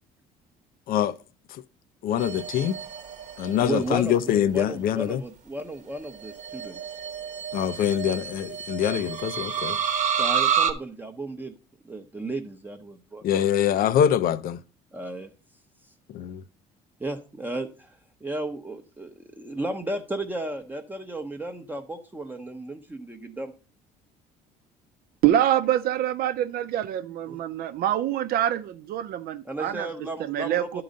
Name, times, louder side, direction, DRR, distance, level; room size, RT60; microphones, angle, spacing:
voice 1, 2.0-2.7 3.4-5.2 7.5-9.8 13.2-14.6 16.1-16.4, left 10 dB, 60° left, 0.6 m, -24 dB
sound 1, 2.2-3.8 6.2-10.7, right 8 dB, 45° right, 1.0 m, -29 dB
voice 2, 3.6-7.0 10.2-11.5 11.8-13.2 14.9-15.3 17.0-23.5 27.3-27.4 29.4-30.8, right 2 dB, 10° right, 0.8 m, -34 dB
voice 3, 25.2-29.9 30.2-30.8, right 11 dB, 65° right, 0.7 m, -25 dB
11.5 x 3.9 x 5.2 m
cardioid pair, 105°, 17 cm